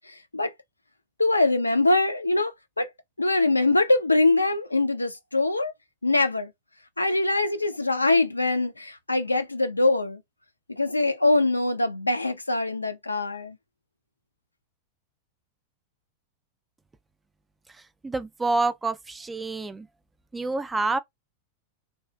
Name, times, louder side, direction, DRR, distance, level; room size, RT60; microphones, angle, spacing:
voice 1, 0.1-0.5 1.2-2.5 2.8-2.9 3.2-5.7 6.0-6.5 7.0-10.2 10.7-13.6, left 2 dB, 85° left, 0.3 m, -23 dB
voice 2, 18.0-19.9 20.3-21.0, right 3 dB, 10° right, 0.3 m, -27 dB
2.6 x 2.3 x 2.3 m
figure-of-eight pair, 90°, 0 cm